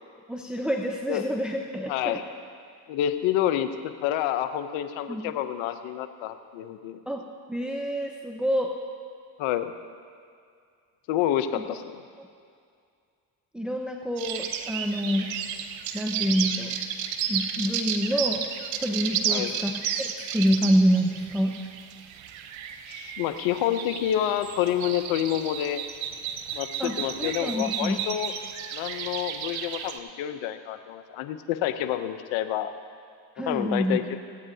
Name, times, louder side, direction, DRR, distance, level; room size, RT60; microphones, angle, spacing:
voice 1, 0.3-2.2 5.1-5.3 7.1-7.2 7.5-8.7 11.5-11.6 12.2-12.3 13.5-15.3 15.9-16.7 17.3-18.5 18.8-21.6 26.8-28.0 33.4-34.0, equal, ahead, 1 dB, 1.0 m, -27 dB
voice 2, 1.9-2.2 2.9-7.0 9.4-9.7 11.1-12.0 19.3-19.5 22.9-25.8 26.5-28.3 28.7-32.7 33.5-34.2, left 11 dB, 85° left, 9 dB, 0.8 m, -28 dB
sound 1, 14.2-30.0, right 8 dB, 80° right, 0.8 m, -33 dB
25.0 x 8.7 x 2.7 m, 2.2 s
supercardioid pair, 50°, 46 cm